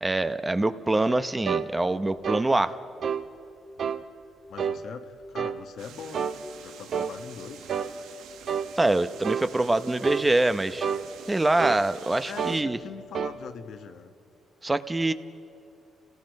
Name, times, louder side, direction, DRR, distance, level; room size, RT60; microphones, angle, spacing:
voice 1, 0.0-2.7 8.8-10.9 11.3-12.8 14.6-15.1, right 2 dB, 15° right, 11 dB, 0.8 m, -24 dB
sound 1, 1.5-1.7 2.2-2.5 3.0-3.3 3.8-4.0 4.6-4.8 5.4-5.6 6.1-6.4 6.9-7.1 7.7-7.9 8.5-8.7 9.2-9.5 10.0-10.3 10.8-11.1 11.6-11.9 12.4-12.6 13.1-13.4, right 7 dB, 55° right, 0.9 m, -29 dB
voice 2, 4.5-6.3 6.6-7.7 12.2-14.1, left 6 dB, 70° left, 7 dB, 1.3 m, -42 dB
sound 2, 5.8-12.6, right 8 dB, 85° right, 1.3 m, -48 dB
29.0 x 18.0 x 5.3 m, 2.7 s
cardioid pair, 90°, 0 cm